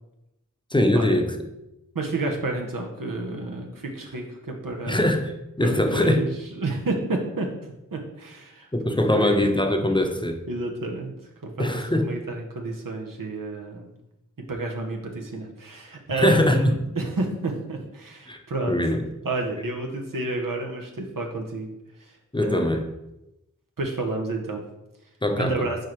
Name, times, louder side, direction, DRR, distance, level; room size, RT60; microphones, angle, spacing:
voice 1, 0.7-1.5 4.9-5.3 5.6-6.2 8.7-10.4 11.6-12.2 16.1-16.7 18.3-18.4 18.7-19.1 22.3-22.8 25.2-25.5, left 1 dB, 15° left, 4 dB, 0.7 m, -22 dB
voice 2, 1.9-5.1 5.6-7.5 7.9-8.7 9.1-9.4 10.0-10.1 10.5-11.1 11.4-13.9 14.5-18.8 19.2-21.7 22.0-22.8 23.8-24.6 25.3-25.8, right 2 dB, 90° right, 1 dB, 1.0 m, -30 dB
4.6 x 4.5 x 4.7 m, 0.89 s
wide cardioid pair, 45°, 32 cm